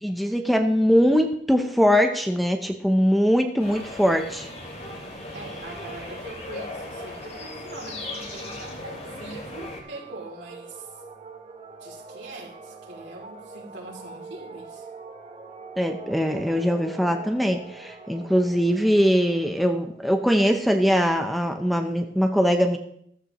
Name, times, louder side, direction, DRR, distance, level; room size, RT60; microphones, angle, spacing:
voice 1, 0.0-4.5 15.8-22.8, equal, ahead, 5 dB, 0.7 m, -22 dB
sound 1, 3.6-9.8, left 1 dB, 40° left, 2.5 m, -37 dB
voice 2, 5.3-11.0 11.8-14.9, right 2 dB, 75° right, -1 dB, 2.9 m, -42 dB
sound 2, 9.0-20.9, right 3 dB, 35° right, 1.1 m, -44 dB
14.0 x 13.0 x 3.0 m, 0.68 s
head